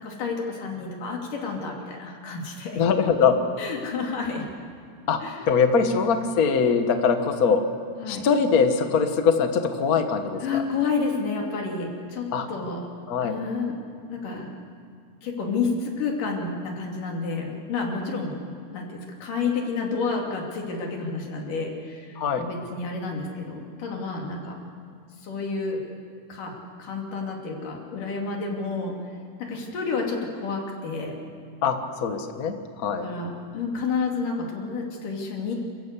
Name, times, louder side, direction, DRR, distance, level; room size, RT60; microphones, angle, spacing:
voice 1, 0.0-2.8 3.6-4.4 5.2-5.4 6.3-6.4 8.0-8.3 10.4-12.8 13.2-14.6 15.2-24.6 25.2-25.8 26.3-26.5 26.8-28.9 29.5-31.1 33.0-35.6, left 4 dB, 75° left, 0 dB, 4.4 m, -30 dB
voice 2, 2.7-3.3 5.1-5.2 5.5-7.6 8.1-10.6 12.3-12.4 13.1-13.3 22.2-22.4 31.6-33.1, left 6 dB, 55° left, 6 dB, 1.0 m, -22 dB
28.0 x 15.0 x 8.3 m, 2.3 s
omnidirectional pair, 3.8 m